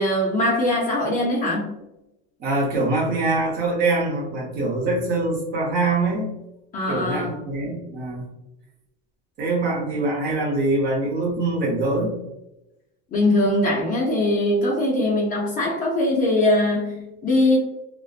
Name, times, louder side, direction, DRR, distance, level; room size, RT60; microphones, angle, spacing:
voice 1, 0.0-1.7 6.7-7.4 13.1-17.6, left 1 dB, 25° left, -3 dB, 0.4 m, -21 dB
voice 2, 2.4-6.3 6.9-8.3 9.4-12.1, right 2 dB, 30° right, -3 dB, 0.7 m, -24 dB
2.5 x 2.1 x 2.3 m, 0.91 s
cardioid pair, 160°, 32 cm